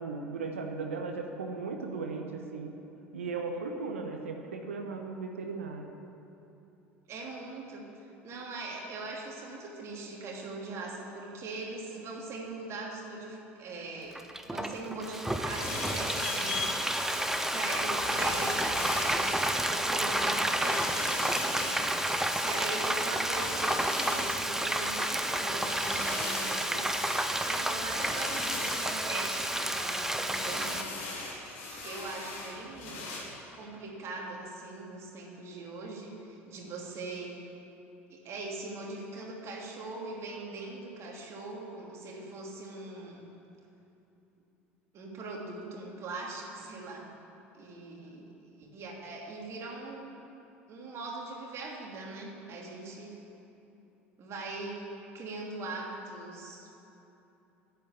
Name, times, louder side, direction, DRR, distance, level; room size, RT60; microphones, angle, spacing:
voice 1, 0.0-2.7 3.1-5.9, right 4 dB, 75° right, 3 dB, 1.1 m, -37 dB
voice 2, 7.1-17.3 17.5-21.8 22.4-30.8 31.6-33.1 33.5-37.4 38.1-43.3 44.9-47.1 47.5-48.3 48.6-50.2 50.7-53.2 54.2-56.7, right 3 dB, 40° right, -1 dB, 2.9 m, -41 dB
Frying (food), 14.1-30.8, right 1 dB, 5° right, 0.8 m, -30 dB
sound 1, 15.3-33.2, left 3 dB, 65° left, 3.1 m, -40 dB
11.5 x 8.3 x 8.7 m, 3.0 s
figure-of-eight pair, 65°, 7 cm